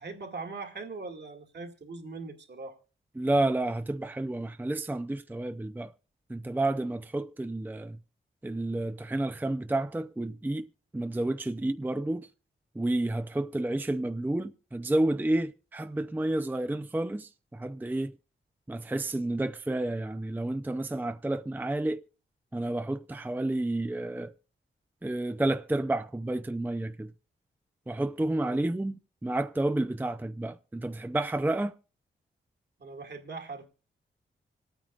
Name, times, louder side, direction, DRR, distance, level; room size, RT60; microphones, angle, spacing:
voice 1, 0.0-2.8 28.4-28.6 32.8-33.6, right 3 dB, 55° right, 2.1 m, -41 dB
voice 2, 3.2-5.9 6.3-8.0 8.4-12.3 12.7-18.2 18.7-22.0 22.5-24.3 25.0-27.1 27.9-29.0 29.2-31.7, right 2 dB, 10° right, 0.5 m, -30 dB
25.5 x 9.0 x 2.4 m
cardioid pair, 45°, 21 cm